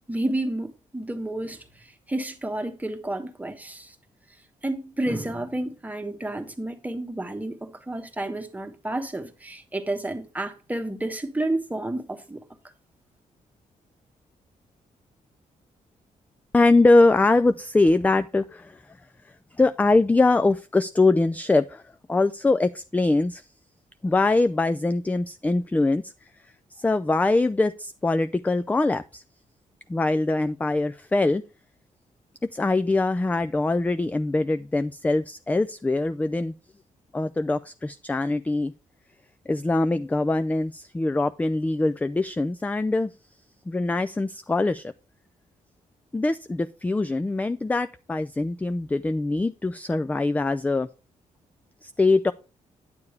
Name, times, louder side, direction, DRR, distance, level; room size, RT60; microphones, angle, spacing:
voice 1, 0.1-3.9 4.6-12.4, right 1 dB, 10° right, 1.2 m, -30 dB
voice 2, 16.5-19.0 19.6-21.8 22.1-23.4 24.0-26.1 26.8-29.2 29.9-31.4 32.5-36.5 37.1-38.7 39.5-43.1 43.7-44.9 46.1-50.9 51.8-52.3, left 2 dB, 10° left, 0.3 m, -23 dB
9.6 x 6.9 x 3.2 m
cardioid pair, 90°, 14 cm